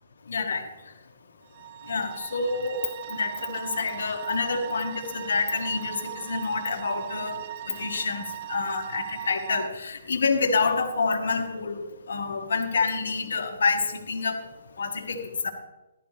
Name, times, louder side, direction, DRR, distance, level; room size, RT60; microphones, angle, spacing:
voice 1, 0.3-0.7 1.9-2.8 3.1-14.4 14.8-15.5, left 4 dB, 75° left, 2 dB, 1.6 m, -28 dB
sound 1, 1.5-9.7, right 12 dB, 45° right, 0.5 m, -38 dB
14.5 x 12.0 x 3.4 m, 1.0 s
hypercardioid pair, 150°, 0 cm